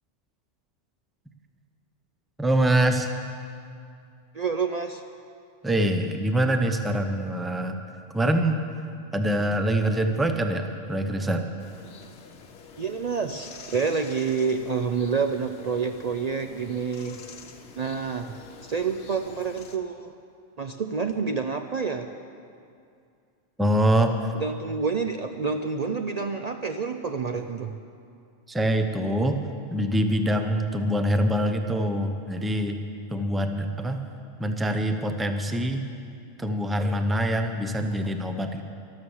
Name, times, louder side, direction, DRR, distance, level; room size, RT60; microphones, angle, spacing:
voice 1, 2.4-3.1 5.6-7.8 8.1-8.6 9.1-11.4 23.6-24.3 28.5-29.4 29.7-32.8 33.1-34.0 34.4-35.9 36.4-38.6, right 1 dB, ahead, 6 dB, 0.6 m, -24 dB
voice 2, 4.3-5.0 12.8-17.2 17.7-18.4 18.6-20.1 20.6-22.1 24.3-27.7, right 5 dB, 55° right, 6 dB, 0.4 m, -28 dB
sound 1, 11.6-19.8, left 5 dB, 65° left, 1.2 m, -47 dB
13.0 x 12.5 x 7.2 m, 2.4 s
omnidirectional pair, 1.3 m